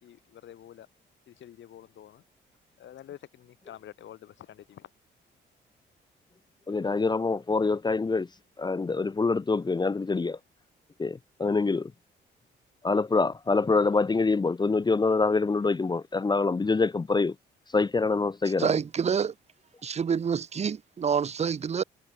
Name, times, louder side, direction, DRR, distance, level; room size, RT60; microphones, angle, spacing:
voice 1, 0.0-0.9 1.3-2.2 2.8-4.9, left 11 dB, 70° left, 3.5 m, -48 dB
voice 2, 6.7-8.3 8.6-10.4 11.0-11.9 12.8-17.3 17.7-18.7, left 3 dB, 20° left, 0.8 m, -25 dB
voice 3, 18.6-19.3 19.8-21.8, right 7 dB, 35° right, 0.7 m, -27 dB
cardioid pair, 90°, 20 cm